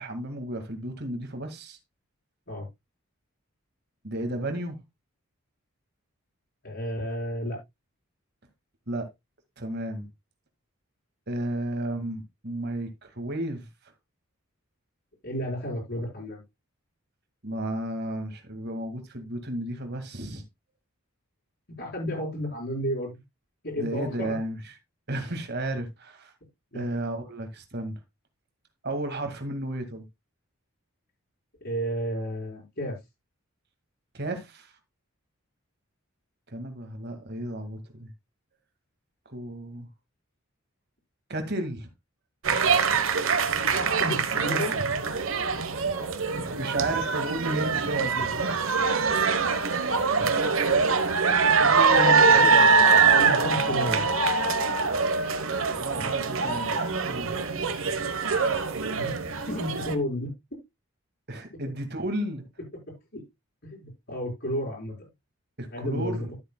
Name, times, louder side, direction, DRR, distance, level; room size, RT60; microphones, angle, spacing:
voice 1, 0.0-1.8 4.0-4.8 8.9-9.1 9.6-10.1 11.3-13.7 17.4-20.4 23.8-24.7 25.1-26.3 26.7-28.0 28.8-30.0 34.1-34.7 36.5-38.1 39.3-39.9 41.3-41.9 45.8-45.9 46.5-48.3 51.6-52.7 55.5-56.8 57.0-57.3 61.3-62.4 65.6-66.3, right 1 dB, 50° right, 2.0 m, -33 dB
voice 2, 6.6-7.6 15.2-16.4 21.7-23.2 23.6-24.4 26.7-26.8 31.6-33.0 44.0-44.8 50.6-50.7 52.4-52.5 53.1-54.1 59.0-59.2 59.5-60.3 63.1-63.2 63.6-64.9 65.7-66.3, equal, 50° left, 5.6 m, -32 dB
sound 1, 42.4-59.9, right 4 dB, 65° right, 1.2 m, -23 dB
12.5 x 8.2 x 2.3 m
head